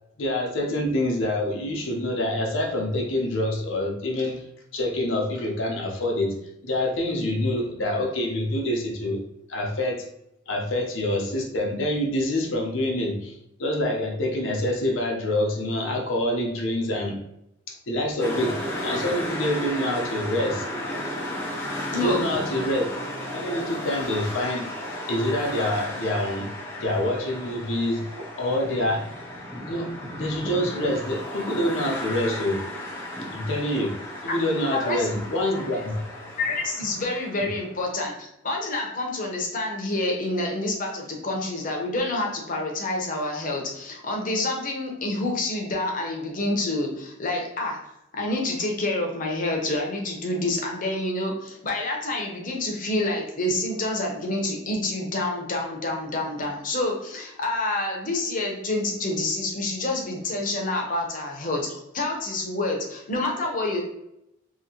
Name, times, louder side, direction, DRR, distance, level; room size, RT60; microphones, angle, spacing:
voice 1, 0.2-4.4 4.7-6.4 6.6-9.2 9.5-10.1 10.5-17.2 17.7-20.7 21.9-22.9 23.1-24.7 25.1-26.5 26.8-29.1 29.7-32.6 33.3-34.0 34.2-36.0 37.4-37.5, left 1 dB, 75° left, 1 dB, 0.7 m, -26 dB
sound 1, 18.2-37.8, left 1 dB, 15° left, 0.6 m, -34 dB
voice 2, 21.9-22.5 34.7-35.8 36.4-47.8 48.1-63.8, left 2 dB, 45° left, 0 dB, 0.7 m, -28 dB
2.8 x 2.8 x 2.8 m, 0.82 s
head